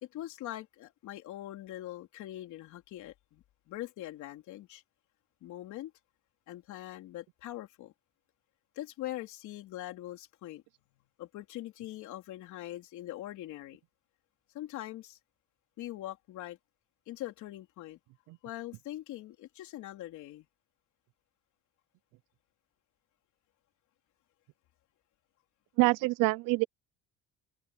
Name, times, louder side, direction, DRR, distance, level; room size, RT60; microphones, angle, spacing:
voice 1, 0.0-4.8 5.4-5.9 6.5-7.9 8.8-10.6 11.2-13.8 14.5-15.2 15.8-16.6 17.1-18.0 18.4-20.5, left 14 dB, 60° left, 3.7 m, -42 dB
voice 2, 25.8-26.6, right 23 dB, 75° right, 0.5 m, -26 dB
cardioid pair, 180°, 34 cm